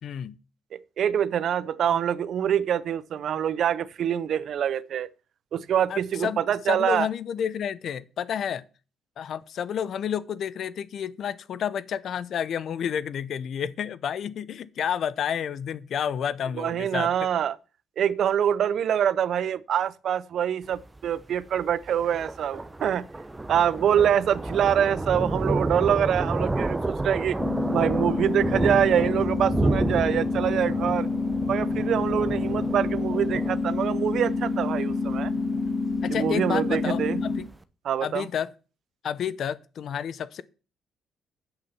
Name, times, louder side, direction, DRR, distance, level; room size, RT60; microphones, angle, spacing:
voice 1, 0.0-0.3 5.9-6.4 6.6-8.6 9.2-17.1 36.0-37.5 38.0-38.5 39.0-40.4, left 8 dB, 65° left, 0.7 m, -30 dB
voice 2, 0.7-5.1 5.5-7.1 16.6-17.6 18.0-23.1 23.5-27.4 27.7-31.1 31.5-35.3 36.1-37.2 37.8-38.3, right 9 dB, 65° right, 0.6 m, -25 dB
Thunder, 20.6-37.6, right 2 dB, 15° right, 0.8 m, -31 dB
sound 1, 27.4-37.4, left 3 dB, 25° left, 1.8 m, -28 dB
8.3 x 6.5 x 7.0 m
cardioid pair, 90°, 0 cm